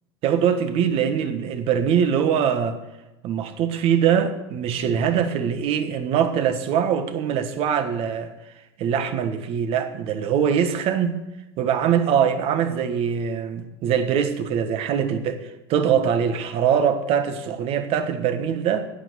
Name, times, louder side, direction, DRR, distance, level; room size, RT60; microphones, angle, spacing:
voice 1, 0.2-2.8 3.2-8.3 8.8-11.2 11.6-18.9, right 8 dB, 45° right, 1.5 m, -22 dB
11.0 x 9.4 x 8.1 m
hypercardioid pair, 85°, 13 cm